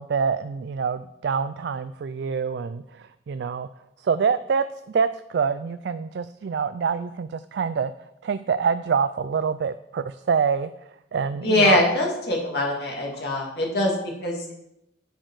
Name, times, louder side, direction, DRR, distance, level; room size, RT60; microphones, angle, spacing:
voice 1, 0.0-3.7 4.0-7.9 8.2-10.7 11.1-11.8, right 6 dB, 60° right, 12 dB, 0.3 m, -26 dB
voice 2, 11.4-14.5, left 2 dB, 55° left, -1 dB, 2.4 m, -23 dB
10.0 x 6.4 x 4.7 m, 0.84 s
head